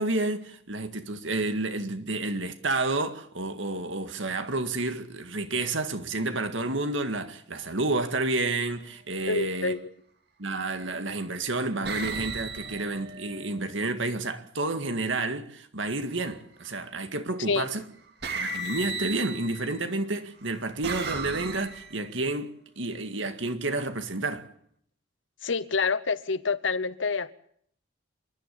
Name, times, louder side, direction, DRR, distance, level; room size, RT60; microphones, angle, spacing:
voice 1, 0.0-9.7 10.4-17.8 18.3-24.5, right 2 dB, 75° right, 2.0 m, -30 dB
voice 2, 9.3-9.8 17.5-17.7 25.4-27.3, left 4 dB, 70° left, 0.9 m, -27 dB
sound 1, 9.6-9.9 10.7-11.2 11.8-13.9 16.1-16.7 17.7-17.8 18.2-19.8 20.4-22.1, right 3 dB, 55° right, 2.2 m, -36 dB
27.5 x 12.0 x 8.8 m
head